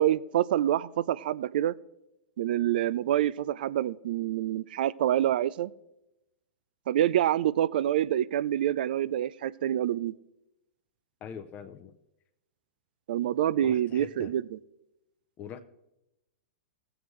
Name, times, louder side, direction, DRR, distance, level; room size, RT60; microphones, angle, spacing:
voice 1, 0.0-1.7 2.4-5.7 6.9-10.1 13.1-14.6, right 11 dB, 65° right, 19 dB, 0.4 m, -27 dB
voice 2, 11.2-11.9 13.5-14.3 15.4-15.6, left 8 dB, 30° left, 8 dB, 0.6 m, -43 dB
16.5 x 7.9 x 3.2 m, 0.90 s
hypercardioid pair, 110°, 5 cm